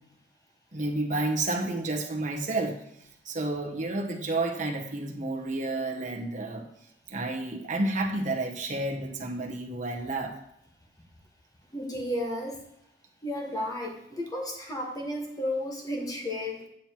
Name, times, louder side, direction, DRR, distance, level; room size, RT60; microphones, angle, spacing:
voice 1, 0.7-2.8 3.2-6.7 7.1-10.3, right 2 dB, 45° right, 0 dB, 1.1 m, -30 dB
voice 2, 11.7-12.6 13.2-16.6, left 1 dB, 20° left, -1 dB, 1.4 m, -33 dB
8.9 x 7.3 x 2.9 m, 0.75 s
head